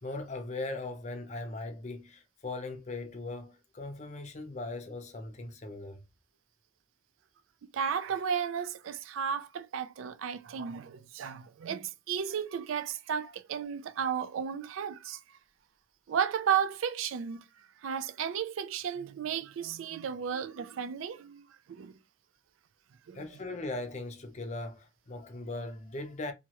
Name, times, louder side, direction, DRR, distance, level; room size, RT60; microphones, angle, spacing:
voice 1, 0.0-6.0 23.1-26.3, left 2 dB, 35° left, 0.5 m, -39 dB
voice 2, 7.7-15.2 16.1-21.9 23.1-23.2, right 7 dB, 85° right, 0.4 m, -34 dB
2.9 x 2.3 x 2.8 m
head